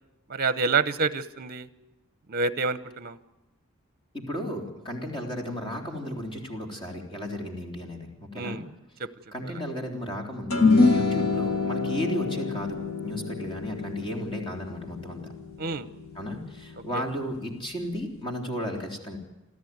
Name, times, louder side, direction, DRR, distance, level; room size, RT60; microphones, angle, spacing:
voice 1, 0.3-1.7 2.3-3.2 8.3-8.6 15.6-15.9 16.9-17.0, right 4 dB, 45° right, 14 dB, 0.9 m, -27 dB
voice 2, 4.1-8.6 9.3-15.3 16.1-19.2, equal, 25° left, 1 dB, 3.5 m, -34 dB
sound 1, 10.5-17.0, left 3 dB, 70° left, 2.1 m, -26 dB
27.5 x 13.5 x 9.5 m, 1.0 s
head